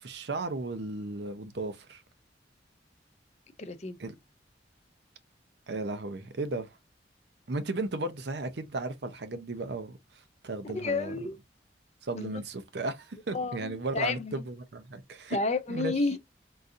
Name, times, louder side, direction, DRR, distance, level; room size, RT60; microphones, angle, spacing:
voice 1, 0.0-2.0 4.0-4.2 5.7-6.7 7.5-10.0 10.4-11.2 12.0-15.4 15.7-15.9, right 2 dB, 65° right, 0.6 m, -35 dB
voice 2, 3.6-4.0 10.6-11.4 12.1-12.4 13.3-14.4 15.3-16.2, left 3 dB, 40° left, 0.5 m, -31 dB
3.8 x 2.7 x 2.4 m
head